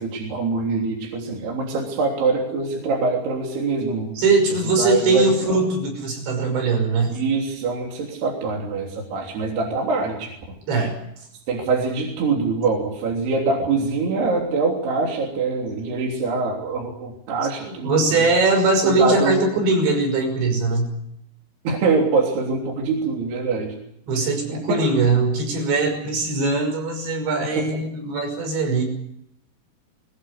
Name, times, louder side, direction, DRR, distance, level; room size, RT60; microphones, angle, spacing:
voice 1, 0.0-4.1 4.8-5.6 7.1-10.3 11.5-18.3 18.8-19.4 21.7-23.8 24.5-24.8 27.6-27.7, right 4 dB, 65° right, -1 dB, 5.3 m, -24 dB
voice 2, 4.2-7.1 10.7-11.0 17.6-20.9 24.1-28.8, right 3 dB, 80° right, 4 dB, 8.2 m, -21 dB
21.5 x 21.5 x 8.1 m, 0.75 s
omnidirectional pair, 5.1 m